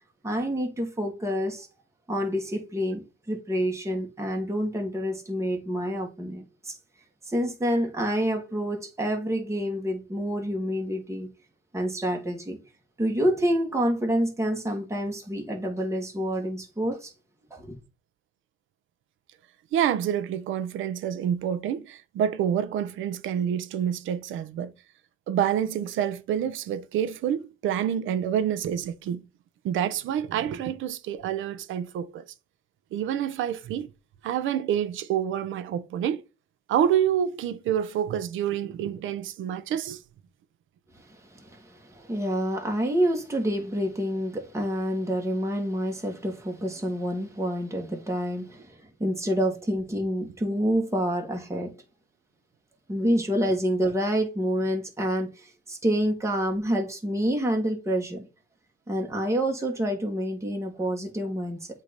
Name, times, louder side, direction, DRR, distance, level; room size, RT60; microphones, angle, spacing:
voice 1, 0.2-1.7 2.1-6.8 7.3-11.3 11.7-12.6 13.0-17.1 17.5-17.8 41.1-51.7 52.9-58.2 58.9-61.7, equal, 15° right, 1.6 m, -28 dB
voice 2, 19.7-24.7 25.3-29.2 29.6-32.2 32.9-33.9 34.2-36.2 36.7-40.0, right 9 dB, 80° right, 0.6 m, -27 dB
8.0 x 2.8 x 5.1 m
cardioid pair, 90°, 20 cm